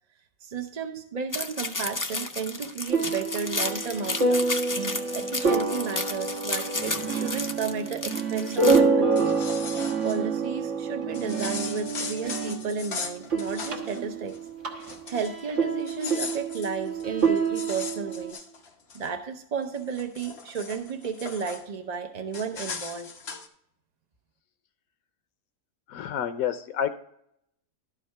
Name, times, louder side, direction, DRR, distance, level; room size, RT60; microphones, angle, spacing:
voice 1, 0.4-4.5 5.1-9.3 10.0-14.4 15.1-18.5 18.9-23.1, right 5 dB, 45° right, 6 dB, 0.5 m, -33 dB
sound 1, 1.3-8.8, left 3 dB, 30° left, 0.3 m, -32 dB
sound 2, 2.9-12.9 13.2-18.3, right 4 dB, 65° right, 1.5 m, -27 dB
sound 3, 9.0-10.2 11.1-14.0 14.3-14.5 14.8-15.4 15.8-19.1 19.6-21.6 22.3-23.5, left 5 dB, 55° left, 1.2 m, -38 dB
voice 2, 25.9-26.9, left 9 dB, 90° left, 10 dB, 1.1 m, -29 dB
12.0 x 5.0 x 4.4 m, 0.74 s
omnidirectional pair, 1.4 m